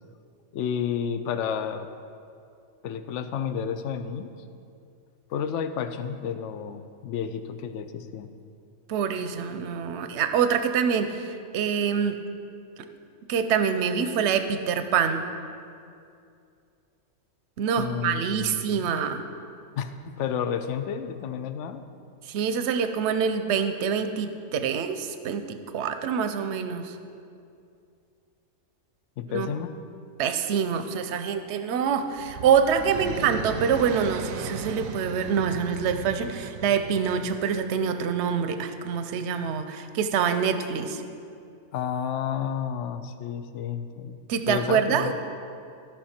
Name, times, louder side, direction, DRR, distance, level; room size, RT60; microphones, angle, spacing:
voice 1, 0.5-1.9 2.8-4.3 5.3-8.3 17.8-18.9 19.8-21.8 29.2-29.7 41.7-44.2 44.5-45.1, left 8 dB, 70° left, 10 dB, 0.8 m, -31 dB
voice 2, 8.9-12.2 13.3-15.2 17.6-19.2 22.3-26.9 29.3-29.5 30.2-41.0 44.3-45.1, right 7 dB, 60° right, 9 dB, 0.8 m, -25 dB
sound 1, 31.8-37.9, right 7 dB, 85° right, 1.0 m, -37 dB
14.5 x 5.8 x 4.3 m, 2.5 s
omnidirectional pair, 1.4 m